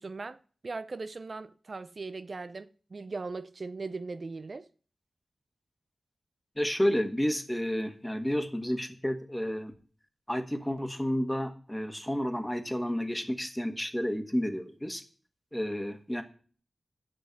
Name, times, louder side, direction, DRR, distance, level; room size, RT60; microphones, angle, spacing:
voice 1, 0.0-4.7, right 3 dB, 55° right, 0.5 m, -39 dB
voice 2, 6.6-9.7 10.3-15.0 15.5-16.2, equal, 10° left, 1.5 m, -31 dB
8.4 x 6.3 x 7.5 m
wide cardioid pair, 65°, 0 cm